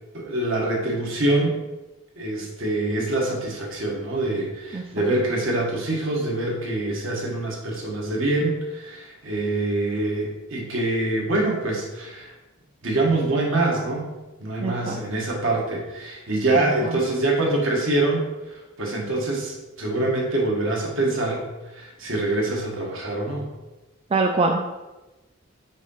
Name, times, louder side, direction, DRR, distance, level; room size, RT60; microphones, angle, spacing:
voice 1, 0.1-1.6 2.2-12.3 12.8-14.1 14.4-23.5, right 2 dB, 65° right, -1 dB, 1.4 m, -25 dB
voice 2, 4.7-5.1 14.6-15.0 16.6-16.9 24.1-24.7, right 3 dB, 30° right, 3 dB, 0.3 m, -25 dB
6.1 x 2.8 x 5.5 m, 1.1 s
head